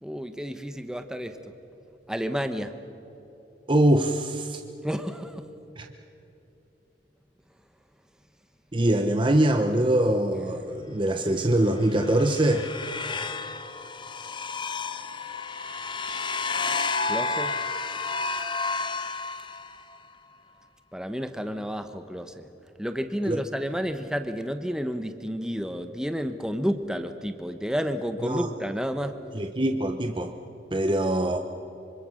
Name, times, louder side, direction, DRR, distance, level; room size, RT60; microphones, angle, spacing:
voice 1, 0.0-1.5 2.1-2.7 4.8-5.5 17.1-17.6 20.9-22.5 22.8-29.2, equal, 5° right, 8 dB, 1.0 m, -31 dB
voice 2, 3.7-4.6 5.8-5.9 8.7-12.7 23.3-23.4 28.2-28.5 29.3-30.3 30.7-31.4, right 1 dB, 25° right, 6 dB, 0.9 m, -23 dB
sound 1, 11.7-20.0, left 4 dB, 25° left, 1.0 m, -31 dB
25.5 x 25.5 x 6.5 m, 2.9 s
head